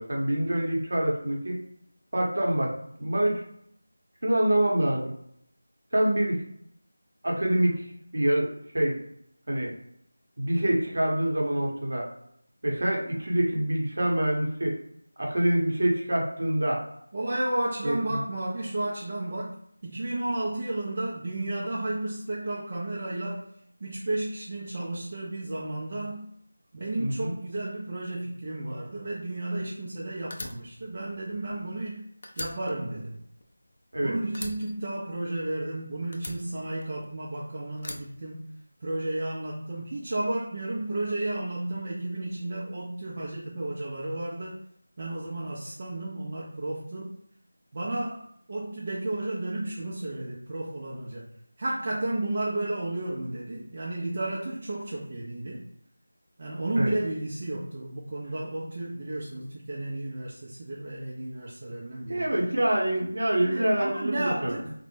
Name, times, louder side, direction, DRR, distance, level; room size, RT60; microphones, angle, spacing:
voice 1, 0.0-1.6 2.1-2.7 3.0-3.4 4.2-5.1 5.9-6.4 7.2-7.9 8.1-9.0 9.5-9.7 10.4-12.1 12.6-14.8 15.2-16.8 17.8-18.2 27.0-27.3 33.9-34.1 56.7-56.9 62.1-64.5, right 1 dB, 60° right, -2 dB, 0.7 m, -26 dB
voice 2, 17.1-19.5 19.8-23.4 23.8-26.3 26.7-32.1 32.4-33.2 34.0-38.5 38.8-44.6 45.0-47.1 47.7-48.2 48.5-51.2 51.6-55.6 56.4-62.4 63.4-64.7, right 1 dB, 35° right, -5 dB, 0.3 m, -32 dB
Fire, 30.3-31.9 32.2-34.0 34.3-35.7 36.1-37.3 37.8-39.0, left 2 dB, 40° left, 0.3 m, -41 dB
2.0 x 2.0 x 3.0 m, 0.72 s
figure-of-eight pair, 170°, 0 cm